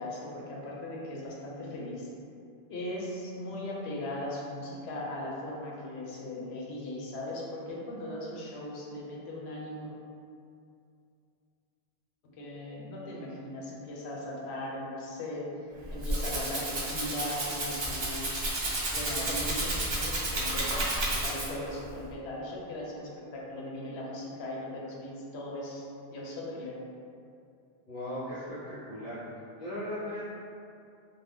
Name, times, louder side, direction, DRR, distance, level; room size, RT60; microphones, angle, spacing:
voice 1, 0.0-2.1 2.7-9.9 12.2-15.5 15.9-18.3 18.9-26.8, left 1 dB, 85° left, -3 dB, 0.9 m, -38 dB
Rattle (instrument), 15.8-21.7, right 1 dB, 50° right, 0.3 m, -31 dB
voice 2, 27.9-30.3, equal, 60° left, -14 dB, 1.0 m, -38 dB
2.6 x 2.0 x 3.3 m, 2.5 s
omnidirectional pair, 1.1 m